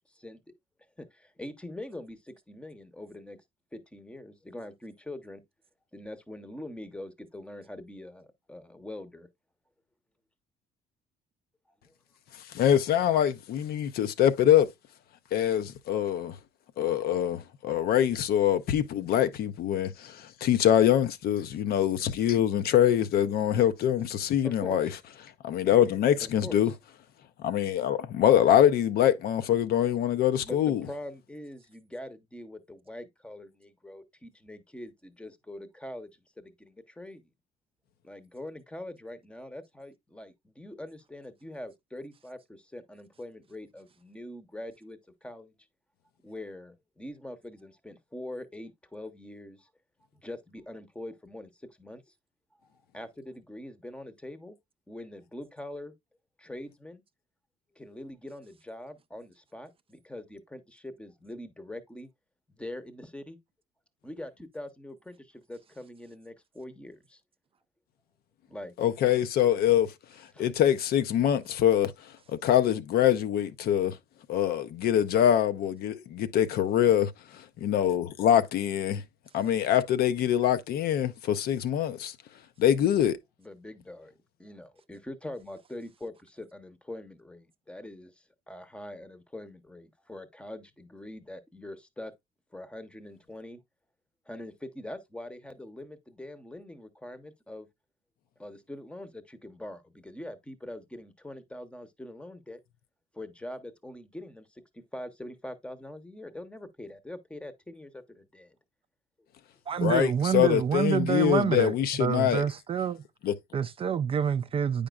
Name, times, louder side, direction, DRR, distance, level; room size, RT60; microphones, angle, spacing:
voice 1, 0.1-0.4 1.0-3.4 3.7-5.4 5.9-9.3 11.8-11.9 24.4-24.9 26.2-26.7 30.4-36.1 36.4-37.2 38.0-45.5 46.2-49.7 50.2-52.0 52.9-54.6 54.9-55.9 56.4-57.0 57.8-62.1 62.5-63.4 64.0-67.2 68.5-68.7 69.5-69.6 70.3-70.5 83.4-92.1 92.5-93.6 94.3-97.7 98.4-102.6 103.1-108.6, left 1 dB, 5° left, 0.8 m, -43 dB
voice 2, 12.5-14.7 15.3-16.3 16.8-24.9 25.4-26.7 27.4-30.8 68.8-69.9 70.4-71.9 72.3-74.0 74.3-79.0 79.3-82.1 82.6-83.2 109.8-112.4 113.2-113.3, left 10 dB, 65° left, 0.6 m, -24 dB
voice 3, 109.7-113.0 113.5-114.9, right 7 dB, 35° right, 0.3 m, -27 dB
8.6 x 5.1 x 2.3 m
cardioid pair, 110°, 17 cm